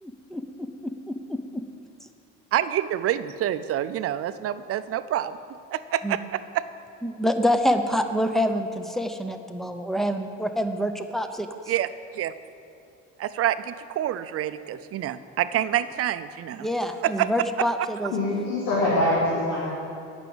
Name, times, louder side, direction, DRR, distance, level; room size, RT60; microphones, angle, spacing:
voice 1, 0.0-1.6 6.0-6.2 7.0-11.5 16.6-18.1, equal, ahead, 7 dB, 0.6 m, -27 dB
voice 2, 2.5-5.4 5.7-6.6 11.7-11.9 12.1-12.3 13.2-16.7 17.0-17.3, right 12 dB, 45° right, 13 dB, 0.5 m, -27 dB
voice 3, 18.1-19.7, left 1 dB, 85° left, -7 dB, 2.6 m, -24 dB
8.8 x 6.1 x 7.8 m, 2.4 s
cardioid pair, 100°, 31 cm